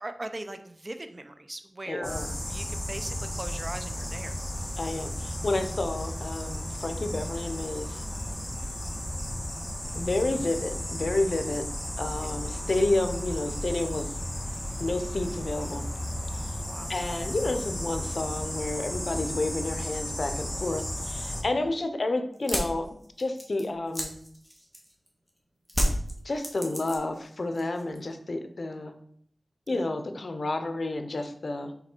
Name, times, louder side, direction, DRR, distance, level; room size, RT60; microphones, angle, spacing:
voice 1, 0.0-4.3 12.2-12.4 16.6-16.9 21.3-21.7 29.7-29.9, right 2 dB, 40° right, 8 dB, 0.6 m, -40 dB
voice 2, 1.9-2.3 4.8-8.0 9.9-11.6 12.0-14.1 14.8-15.8 16.9-22.9 23.2-24.2 26.2-28.9 29.7-31.7, left 2 dB, 65° left, 7 dB, 0.7 m, -30 dB
sound 1, 2.0-21.4, equal, 20° left, 1.5 m, -34 dB
sound 2, 22.3-25.1 25.7-27.2 27.5-28.1, equal, 5° right, 1.6 m, -31 dB
5.8 x 4.0 x 4.5 m, 0.63 s
wide cardioid pair, 60°, 0 cm